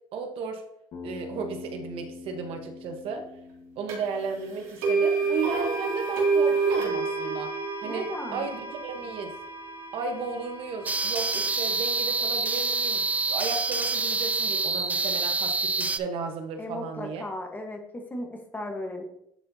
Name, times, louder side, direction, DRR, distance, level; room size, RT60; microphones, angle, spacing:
voice 1, 0.1-0.6 1.0-3.2 3.8-7.5 7.8-9.4 9.9-17.2, right 5 dB, 65° right, 5 dB, 1.1 m, -34 dB
Bass guitar, 0.9-5.2, left 4 dB, 65° left, 1.7 m, -44 dB
sound 1, 3.9-4.0 4.8-12.9, right 4 dB, 85° right, 2.5 m, -29 dB
voice 2, 7.8-8.5 16.6-19.0, left 1 dB, 15° left, 3 dB, 1.2 m, -36 dB
sound 2, 10.9-16.0, right 3 dB, 15° right, 0.3 m, -27 dB
10.0 x 4.3 x 2.8 m, 0.78 s
cardioid pair, 120°, 10 cm